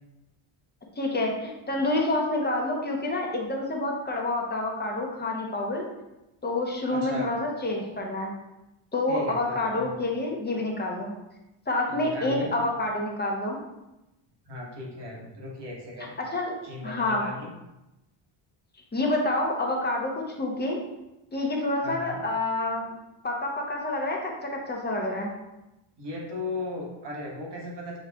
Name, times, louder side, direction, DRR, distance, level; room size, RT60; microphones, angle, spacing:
voice 1, 1.0-5.9 6.4-8.3 8.9-11.1 11.7-13.6 16.3-16.5 16.8-17.2 18.9-20.8 21.3-22.9 23.2-25.3, left 2 dB, 20° left, -1 dB, 0.7 m, -28 dB
voice 2, 6.9-7.3 9.1-10.0 11.9-12.5 14.4-16.2 16.6-17.5 21.8-22.2 26.0-28.0, left 2 dB, 55° right, -3 dB, 1.4 m, -36 dB
6.6 x 2.3 x 3.4 m, 0.95 s
wide cardioid pair, 150°, 50 cm